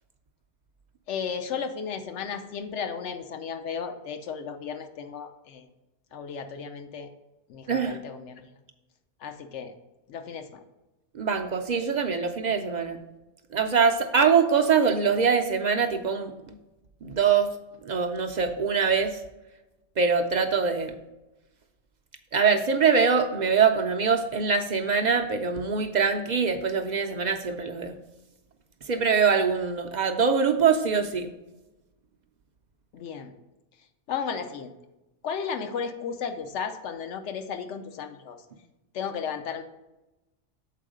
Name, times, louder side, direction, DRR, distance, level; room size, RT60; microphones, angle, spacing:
voice 1, 1.1-5.7 6.1-7.1 7.5-8.4 9.2-9.7 10.1-10.6 12.2-12.3 32.9-33.3 34.1-34.7 35.2-38.4 38.9-39.6, left 6 dB, 75° left, 8 dB, 1.0 m, -34 dB
voice 2, 7.7-8.0 11.1-13.0 13.5-16.5 17.0-17.5 17.8-19.2 20.0-20.9 22.3-27.9 28.8-31.3, right 6 dB, 55° right, 6 dB, 0.5 m, -23 dB
7.5 x 4.5 x 5.0 m, 1.0 s
omnidirectional pair, 1.2 m